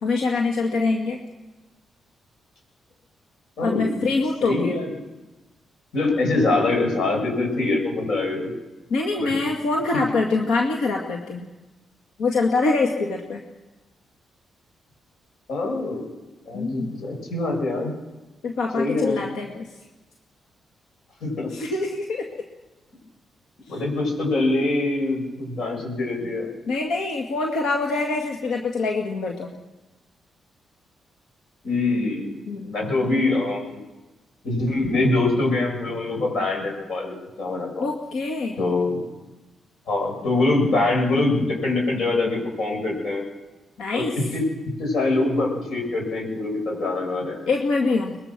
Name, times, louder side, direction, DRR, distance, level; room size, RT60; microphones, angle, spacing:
voice 1, 0.0-1.2 3.6-4.8 8.9-11.5 12.2-13.4 16.5-16.9 18.4-19.7 21.5-22.3 26.7-29.5 32.5-32.7 37.8-38.6 43.8-44.1 47.5-48.2, left 3 dB, 90° left, 0 dB, 2.2 m, -24 dB
voice 2, 3.6-4.0 4.4-4.9 5.9-8.5 9.2-9.3 9.9-10.0 15.5-16.1 16.5-17.9 18.7-19.2 21.2-21.5 23.7-26.5 31.6-32.4 32.6-33.8 34.4-37.9 38.6-39.0 39.9-43.2 43.9-44.1 44.3-44.4 44.8-47.4, left 2 dB, 70° left, 1 dB, 7.9 m, -24 dB
23.0 x 21.5 x 6.2 m, 1.1 s
cardioid pair, 100°, 0 cm